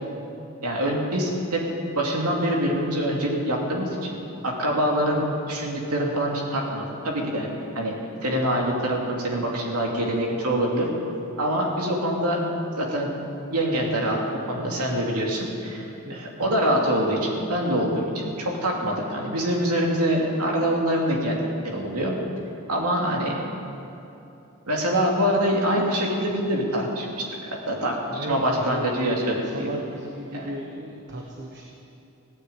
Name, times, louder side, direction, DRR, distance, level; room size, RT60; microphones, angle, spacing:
voice 1, 0.6-1.6 2.0-4.2 4.4-7.5 7.7-7.9 8.2-10.9 11.4-12.4 12.8-13.2 13.5-14.2 14.5-21.4 21.6-22.1 22.7-23.4 24.6-27.2 27.7-29.7 30.3-30.5, equal, 85° right, -1 dB, 2.8 m, -25 dB
voice 2, 16.0-16.5 28.1-31.6, right 1 dB, 50° right, 0 dB, 1.3 m, -36 dB
17.0 x 9.5 x 8.4 m, 2.9 s
head